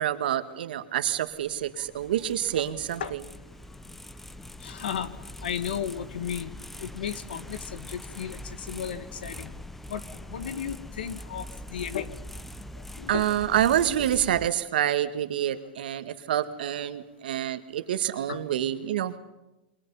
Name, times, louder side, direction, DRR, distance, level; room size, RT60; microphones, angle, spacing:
voice 1, 0.0-3.0 13.1-19.2, right 11 dB, 80° right, 10 dB, 1.8 m, -27 dB
sound 1, 1.0-14.5, left 1 dB, 5° left, 0.7 m, -43 dB
voice 2, 4.6-6.5 6.8-9.6 9.9-12.2 13.0-13.3 18.3-18.4, left 8 dB, 90° left, 12 dB, 2.0 m, -35 dB
29.0 x 23.0 x 5.7 m, 1.0 s
supercardioid pair, 145°, 5 cm